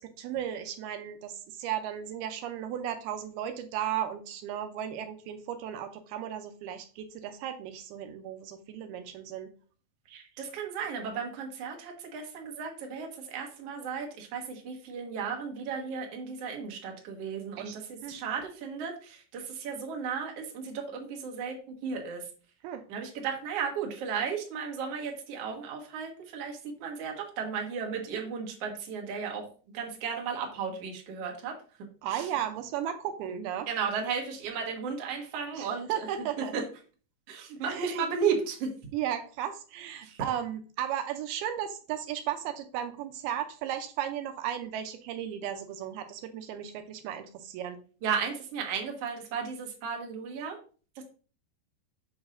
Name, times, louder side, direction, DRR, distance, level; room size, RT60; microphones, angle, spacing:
voice 1, 0.0-9.5 17.6-17.8 18.0-18.2 22.6-22.9 32.0-33.7 35.5-36.5 37.7-38.1 38.9-47.8, right 10 dB, 85° right, 7 dB, 2.5 m, -35 dB
voice 2, 10.1-22.3 22.9-31.6 32.1-32.3 33.7-36.1 36.5-36.6 37.3-38.7 40.0-40.2 48.0-50.6 51.0-51.1, right 6 dB, 55° right, 1 dB, 2.0 m, -34 dB
7.9 x 6.0 x 2.6 m, 0.39 s
omnidirectional pair, 4.5 m